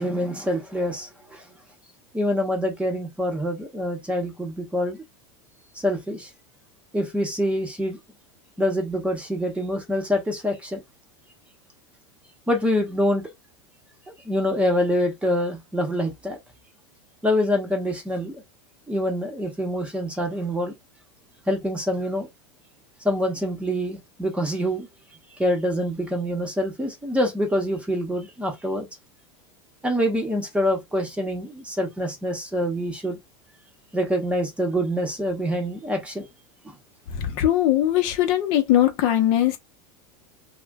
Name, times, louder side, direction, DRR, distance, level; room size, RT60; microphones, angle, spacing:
voice 1, 0.0-1.5 2.1-5.0 5.8-6.3 6.9-8.0 8.6-10.8 12.5-13.3 14.2-16.4 17.2-18.4 18.9-20.7 21.5-22.3 23.0-24.9 25.4-28.9 29.8-33.2 33.9-36.3 36.6-36.8, equal, 10° right, 0.8 m, -25 dB
voice 2, 37.1-39.6, left 12 dB, 55° left, 0.7 m, -20 dB
2.4 x 2.1 x 3.4 m
supercardioid pair, 120°, 14 cm